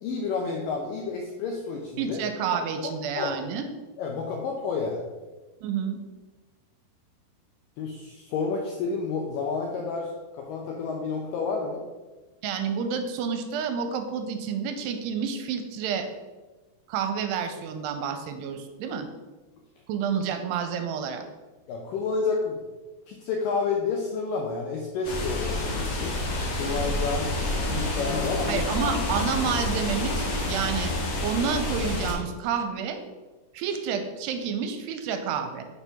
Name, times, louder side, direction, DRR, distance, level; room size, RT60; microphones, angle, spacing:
voice 1, 0.0-2.2 3.2-3.4 4.0-5.0 7.8-11.8 21.7-22.6 23.1-26.2 26.5-27.3 27.6-28.9, left 4 dB, 80° left, 0 dB, 1.9 m, -30 dB
voice 2, 2.0-3.6 5.6-6.0 12.4-16.1 16.9-19.1 19.9-21.2 28.5-30.9 31.2-33.0 33.5-35.6, right 6 dB, 85° right, 7 dB, 2.7 m, -29 dB
sound 1, 25.0-32.1, left 1 dB, 60° left, 1.9 m, -28 dB
6.6 x 4.5 x 5.7 m, 1.2 s
omnidirectional pair, 4.8 m